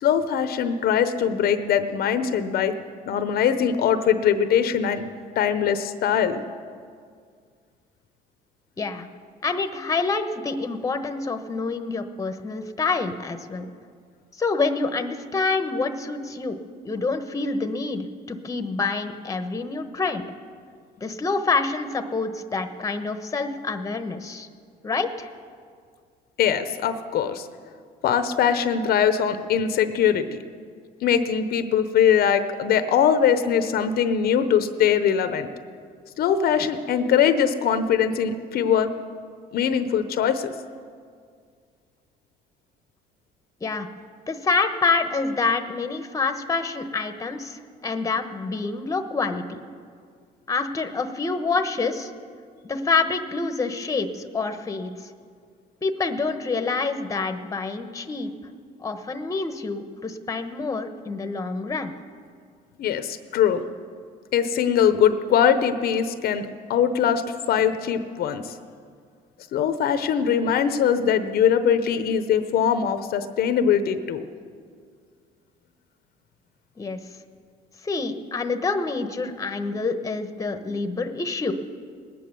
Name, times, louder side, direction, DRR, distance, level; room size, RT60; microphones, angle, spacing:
voice 1, 0.0-2.7 3.1-5.1 5.4-6.4 26.4-27.5 28.0-30.4 31.0-35.5 36.2-38.9 39.5-40.5 62.8-63.6 64.3-68.6 69.5-74.3, left 8 dB, 65° left, 10 dB, 0.8 m, -22 dB
voice 2, 8.8-9.1 9.4-13.7 14.4-20.2 21.0-24.5 24.8-25.3 43.6-43.9 44.3-49.7 50.5-52.1 52.6-54.9 55.8-58.3 58.8-61.9 76.8-77.0 77.8-81.5, left 4 dB, 20° left, 8 dB, 1.0 m, -27 dB
19.5 x 9.4 x 6.8 m, 2.1 s
cardioid pair, 110°, 17 cm